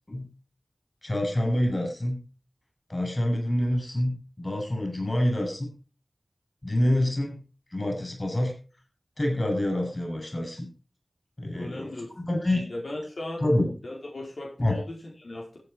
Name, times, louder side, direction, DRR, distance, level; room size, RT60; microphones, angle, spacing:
voice 1, 1.0-2.2 2.9-5.7 6.6-7.4 7.7-8.5 9.2-10.7 11.4-11.9 12.2-12.7 13.4-13.7 14.6-14.8, left 1 dB, 40° left, 2 dB, 7.6 m, -26 dB
voice 2, 11.5-12.1 12.7-13.4 13.8-15.6, left 1 dB, 90° left, -2 dB, 4.6 m, -37 dB
14.5 x 9.3 x 4.7 m, 0.36 s
wide cardioid pair, 45°, 0 cm